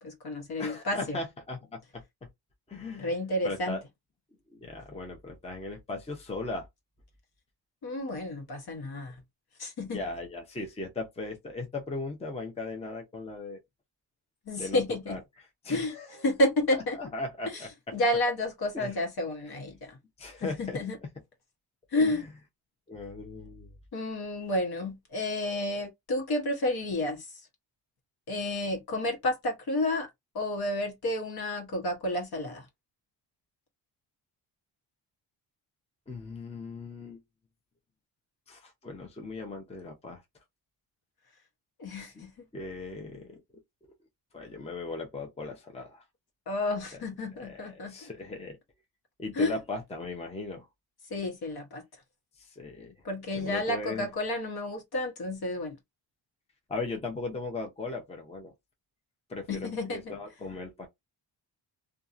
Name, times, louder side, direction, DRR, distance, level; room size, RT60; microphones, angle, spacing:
voice 1, 0.0-1.2 3.0-3.8 7.8-9.2 9.6-10.0 14.5-15.2 15.7-15.9 16.2-17.0 17.4-17.7 17.9-20.0 20.4-21.0 21.9-22.2 23.9-27.4 28.3-30.1 30.3-32.7 41.8-42.3 46.5-48.1 49.3-49.5 51.1-51.8 53.0-55.8 59.5-60.1, left 1 dB, 55° left, 1.1 m, -30 dB
voice 2, 0.6-2.0 2.7-3.1 3.4-3.8 4.5-6.7 9.9-13.6 14.6-15.2 15.6-16.2 17.0-17.9 18.7-19.0 20.2-21.1 21.9-22.3 22.9-23.7 36.1-37.2 38.5-40.2 42.0-42.3 42.5-43.4 44.3-46.0 47.4-48.6 49.2-50.7 52.4-52.9 53.3-54.1 56.7-58.5 59.3-60.9, left 3 dB, 15° left, 0.7 m, -38 dB
2.7 x 2.4 x 2.5 m
cardioid pair, 115°, 45 cm